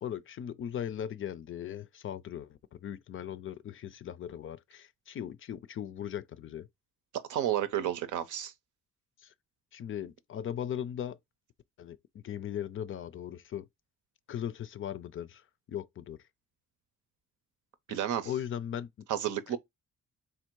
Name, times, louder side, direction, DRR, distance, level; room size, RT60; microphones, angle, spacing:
voice 1, 0.0-6.7 9.2-9.3 9.7-11.2 11.8-13.7 14.3-16.2 17.9-19.1, left 9 dB, 45° left, 0.4 m, -38 dB
voice 2, 7.3-8.5 17.9-18.3 19.1-19.6, right 10 dB, 80° right, 0.7 m, -31 dB
3.5 x 2.5 x 4.5 m
cardioid pair, 90°, 30 cm